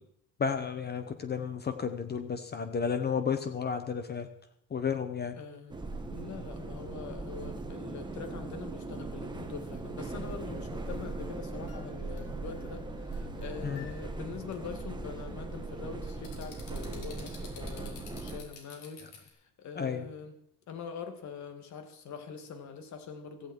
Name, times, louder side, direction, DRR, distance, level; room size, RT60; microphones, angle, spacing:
voice 1, 0.4-4.3 4.7-5.4 13.6-13.8 19.8-20.0, left 6 dB, 25° left, 9 dB, 1.0 m, -32 dB
voice 2, 5.4-20.3 20.7-23.5, left 6 dB, 45° left, 6 dB, 2.6 m, -44 dB
sound 1, 5.7-18.4, right 3 dB, 10° right, 1.4 m, -39 dB
sound 2, 11.7-12.7 13.1-14.2 14.5-14.7 16.2-19.3, left 7 dB, 70° left, 4.8 m, -50 dB
16.5 x 15.0 x 4.6 m, 0.73 s
cardioid pair, 155°, 41 cm